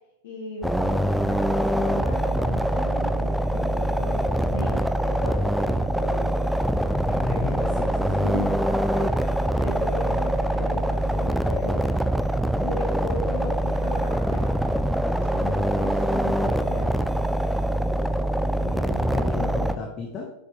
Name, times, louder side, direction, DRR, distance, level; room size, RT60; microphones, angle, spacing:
voice 1, 0.2-6.3 8.1-8.6 8.9-11.8 12.6-14.5 15.3-17.2 18.6-19.4, left 2 dB, 55° left, -2 dB, 2.2 m, -37 dB
sound 1, 0.6-19.8, right 1 dB, ahead, 0.3 m, -24 dB
voice 2, 7.0-8.3 19.1-20.3, left 4 dB, 30° left, 1 dB, 0.9 m, -33 dB
sound 2, 8.4-15.7, right 3 dB, 55° right, 1.6 m, -51 dB
6.4 x 5.9 x 3.2 m, 0.90 s
figure-of-eight pair, 90°, 0 cm